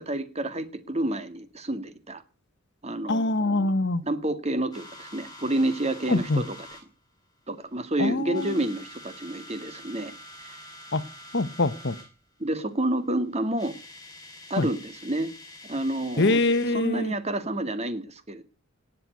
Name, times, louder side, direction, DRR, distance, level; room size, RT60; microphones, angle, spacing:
voice 1, 0.0-2.2 2.8-3.7 4.0-6.6 7.5-10.1 10.4-10.6 12.4-13.7 14.5-15.3 15.6-16.4 16.7-18.4, right 1 dB, 30° right, 10 dB, 2.0 m, -29 dB
voice 2, 3.1-4.0 6.1-6.4 8.0-8.6 10.9-11.0 11.3-12.0 14.6-14.7 16.2-17.1, left 2 dB, 50° left, 14 dB, 1.2 m, -24 dB
sound 1, 4.7-6.8 7.6-7.9 8.2-12.1 13.2-13.3 13.5-16.8, left 1 dB, 15° left, 6.9 m, -46 dB
19.0 x 7.8 x 9.4 m, 0.37 s
head